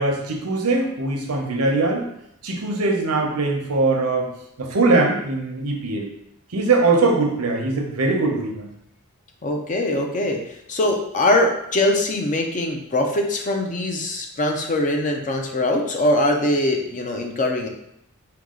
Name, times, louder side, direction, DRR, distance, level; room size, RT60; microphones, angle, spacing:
voice 1, 0.0-2.1 2.4-4.3 4.6-6.1 6.5-8.7, right 3 dB, 85° right, 2 dB, 0.8 m, -21 dB
voice 2, 9.4-10.4 10.7-17.7, left 1 dB, 35° left, 2 dB, 0.6 m, -22 dB
4.6 x 2.3 x 3.7 m, 0.77 s
head